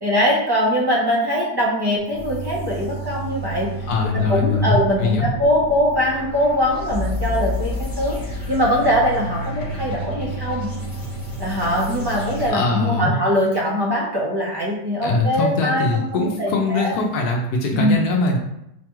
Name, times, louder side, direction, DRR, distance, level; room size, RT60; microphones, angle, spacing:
voice 1, 0.0-3.7 4.1-10.7 11.4-15.8 16.1-16.9 17.7-18.0, equal, 25° right, -4 dB, 0.5 m, -22 dB
sound 1, 2.1-12.5, equal, 20° left, 0.5 m, -30 dB
voice 2, 3.9-5.3 12.5-13.2 15.0-18.4, left 3 dB, 75° left, 0 dB, 1.1 m, -22 dB
4.9 x 2.3 x 3.0 m, 0.79 s
omnidirectional pair, 1.8 m